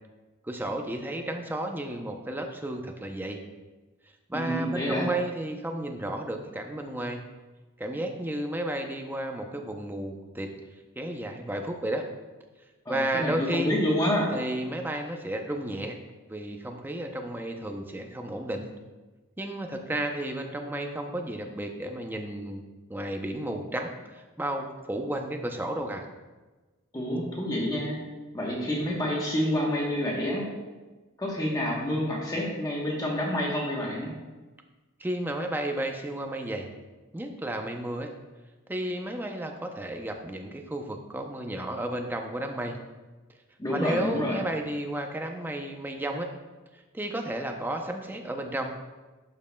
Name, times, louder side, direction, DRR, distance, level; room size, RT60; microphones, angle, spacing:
voice 1, 0.4-3.4 4.3-7.2 7.8-10.6 11.0-12.1 12.9-13.8 14.3-16.0 16.3-18.7 19.4-22.6 22.9-26.1 35.0-36.7 37.1-38.1 38.7-42.8 43.7-46.3 46.7-48.7, right 1 dB, 10° right, 3 dB, 0.5 m, -32 dB
voice 2, 4.3-5.1 12.8-14.3 26.9-28.0 28.3-30.5 31.2-34.1 43.6-44.4, equal, 20° left, -3 dB, 1.0 m, -28 dB
11.5 x 5.3 x 2.2 m, 1.2 s
head